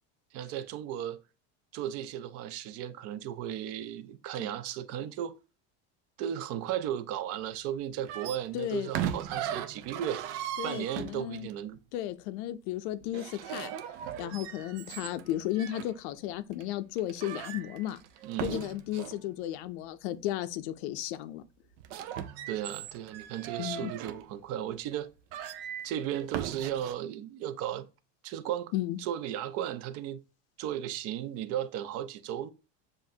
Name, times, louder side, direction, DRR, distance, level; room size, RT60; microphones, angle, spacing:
voice 1, 0.3-1.2 1.7-5.4 6.2-10.3 10.6-11.8 18.2-18.6 22.5-25.1 25.8-27.9 28.2-28.7 29.0-30.2 30.6-32.5, right 10 dB, 45° right, 0.5 m, -35 dB
sound 1, 8.1-11.5 13.0-15.9 16.5-16.6 17.0-19.2 21.7-24.2 24.9-25.0 25.3-26.9, right 10 dB, 90° right, 0.6 m, -38 dB
voice 2, 8.5-8.9 10.6-11.5 11.9-13.7 14.2-18.0 18.4-21.4 23.6-23.9 28.7-29.0, left 13 dB, 80° left, 0.5 m, -34 dB
7.3 x 2.6 x 2.7 m
cardioid pair, 160°, 33 cm